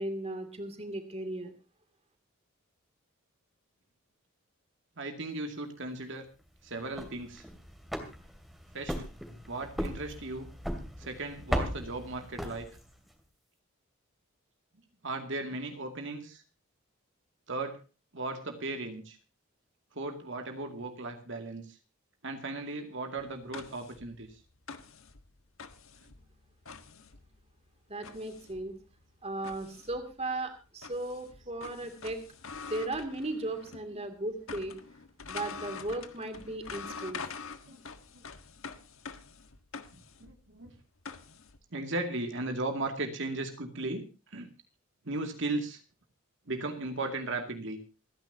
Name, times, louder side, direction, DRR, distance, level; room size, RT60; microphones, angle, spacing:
voice 1, 0.0-1.5 27.9-28.7 29.2-32.2 32.7-34.8 35.3-37.2, right 2 dB, 30° right, 7 dB, 2.6 m, -36 dB
voice 2, 5.0-6.3 6.6-7.4 8.7-9.0 9.5-10.5 11.0-12.7 15.0-16.4 17.5-17.8 18.1-19.2 19.9-21.8 22.2-24.4 32.8-32.9 34.0-34.1 36.9-37.0 37.7-37.8 38.1-38.2 40.2-40.7 41.7-44.5 45.0-45.8 46.5-47.8, right 2 dB, 60° right, 5 dB, 2.3 m, -36 dB
sound 1, 6.8-13.1, equal, ahead, 2.5 m, -37 dB
sound 2, 23.2-33.9 34.2-41.6, left 5 dB, 70° left, 1.5 m, -46 dB
27.5 x 10.5 x 2.8 m, 0.32 s
head